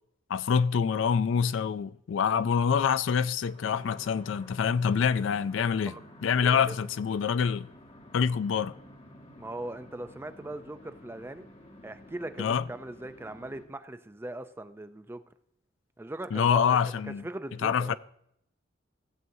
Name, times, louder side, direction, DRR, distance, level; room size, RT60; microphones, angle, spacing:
voice 1, 0.3-5.9 6.2-7.7 8.1-8.7 12.4-12.6 16.3-17.2 17.6-17.9, left 7 dB, 70° left, 0.4 m, -26 dB
sound 1, 3.4-13.7, left 1 dB, 30° left, 1.0 m, -51 dB
voice 2, 6.4-6.7 9.4-11.5 11.8-15.2 16.0-16.8 17.0-17.9, right 1 dB, 10° right, 0.4 m, -40 dB
15.5 x 7.7 x 2.7 m
head